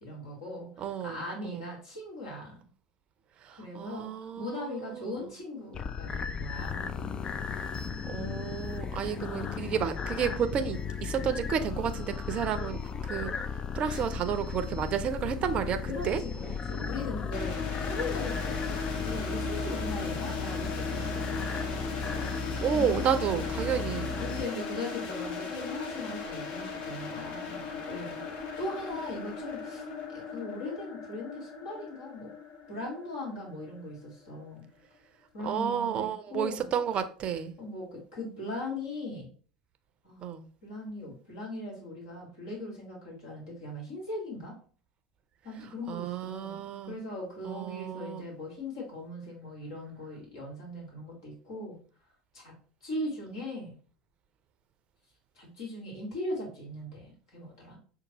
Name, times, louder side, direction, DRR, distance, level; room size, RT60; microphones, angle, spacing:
voice 1, 0.0-2.6 3.6-4.1 4.4-6.9 13.8-14.0 15.9-16.1 16.4-21.8 22.7-23.1 24.1-32.3 32.7-34.6 35.3-36.7 37.6-39.3 40.0-40.3 40.6-44.6 45.4-51.8 52.3-52.5 52.8-53.7 55.4-57.8, left 1 dB, 65° left, 2.0 m, -39 dB
voice 2, 0.8-1.7 3.4-5.3 8.0-13.3 13.7-16.2 22.6-24.1 35.4-37.5 40.2-40.4 45.9-47.0 47.4-48.3, right 8 dB, 40° right, 0.5 m, -31 dB
sound 1, 5.7-24.5, left 5 dB, 30° left, 0.3 m, -35 dB
sound 2, 17.3-34.2, left 4 dB, 45° left, 0.9 m, -38 dB
6.3 x 2.4 x 2.9 m
figure-of-eight pair, 75°, 3 cm